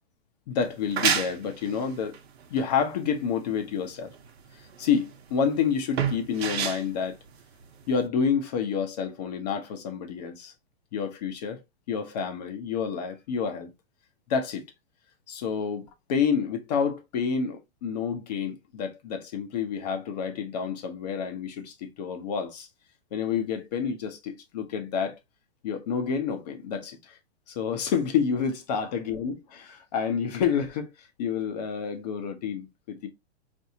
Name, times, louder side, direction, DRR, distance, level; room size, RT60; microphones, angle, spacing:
voice 1, 0.5-2.2 2.5-4.1 4.8-7.2 7.9-10.5 10.9-11.6 11.9-13.7 14.3-14.7 15.3-22.7 23.1-25.2 25.6-27.2 27.5-33.1, left 6 dB, 40° left, 0.8 m, -29 dB
Opening-and-closing-old-wardrobe, 0.6-8.1, right 8 dB, 70° right, 0.8 m, -31 dB
4.7 x 2.7 x 2.7 m
hypercardioid pair, 165°, 33 cm